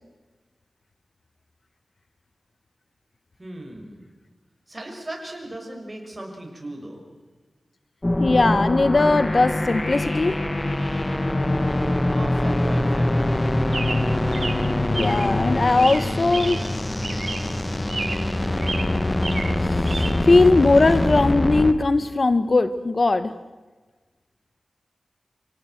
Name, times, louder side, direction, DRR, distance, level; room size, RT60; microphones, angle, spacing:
voice 1, 3.4-4.1 4.7-7.1 12.1-13.4, right 1 dB, 30° right, 1 dB, 6.3 m, -37 dB
sound 1, 8.0-21.7, left 1 dB, 25° left, 1.4 m, -23 dB
voice 2, 8.2-10.4 14.9-16.6 19.6-23.3, left 3 dB, 50° left, 13 dB, 1.0 m, -19 dB
Chirp tweet, 13.7-15.3 15.8-16.8 17.0-17.6 17.9-18.4 18.6-20.1, right 3 dB, 55° right, 2.1 m, -32 dB
27.0 x 17.5 x 7.8 m, 1.3 s
wide cardioid pair, 80°, 0 cm